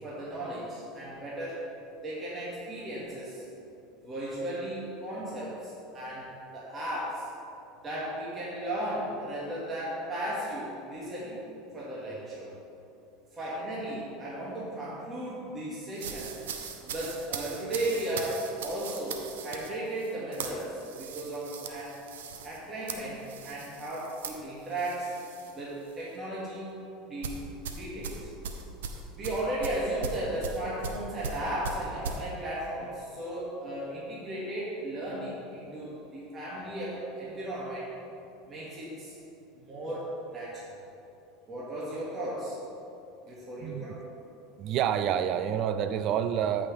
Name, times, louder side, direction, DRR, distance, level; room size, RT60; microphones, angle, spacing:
voice 1, 0.0-1.7 2.0-3.4 4.0-7.3 7.8-11.4 11.7-12.5 13.3-16.3 16.8-22.0 22.4-25.2 25.5-26.8 27.1-27.4 27.7-28.3 29.1-37.9 38.5-39.2 39.6-40.8 41.5-42.6 43.3-44.0, right 1 dB, 30° right, -7 dB, 2.3 m, -35 dB
sound 1, 16.0-25.6 25.9-26.2 27.2-32.2, right 5 dB, 90° right, 0.7 m, -39 dB
voice 2, 43.6-44.0 44.6-46.7, right 9 dB, 50° right, 11 dB, 0.5 m, -28 dB
13.5 x 5.9 x 3.5 m, 2.7 s
supercardioid pair, 105°, 0 cm